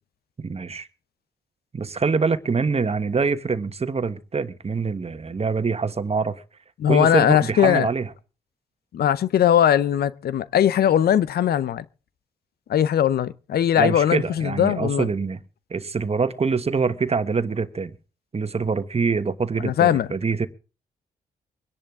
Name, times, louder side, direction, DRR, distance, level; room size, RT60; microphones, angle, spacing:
voice 1, 0.4-0.9 1.7-6.4 6.9-8.1 13.8-15.4 15.7-17.9 18.3-20.5, right 4 dB, 40° right, 1.3 m, -25 dB
voice 2, 6.8-7.9 8.9-11.8 12.7-15.1 19.6-20.1, left 10 dB, 75° left, 0.6 m, -20 dB
24.0 x 10.5 x 3.7 m
cardioid pair, 60°, 16 cm